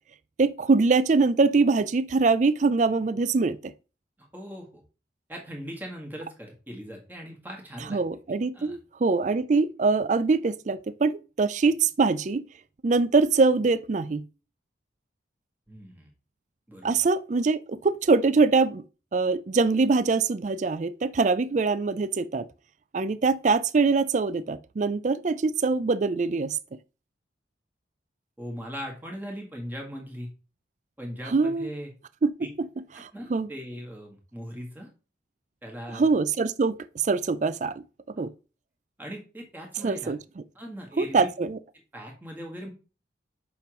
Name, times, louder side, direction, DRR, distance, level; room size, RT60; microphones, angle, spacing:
voice 1, 0.4-3.7 7.9-12.4 12.8-14.2 16.8-18.8 19.1-22.4 22.9-26.6 31.3-31.7 32.2-32.3 32.6-32.7 33.0-33.5 35.9-36.8 37.0-37.8 38.2-38.3 39.8-40.2 41.0-41.6, right 4 dB, 40° right, 0.4 m, -23 dB
voice 2, 4.2-4.8 5.3-8.0 8.5-8.8 15.7-16.1 16.7-17.1 28.4-30.3 31.0-31.9 32.4-32.5 32.9-34.9 35.6-36.2 39.0-40.1 40.5-41.3 41.9-42.7, equal, 10° right, 1.7 m, -39 dB
7.0 x 5.3 x 3.1 m
head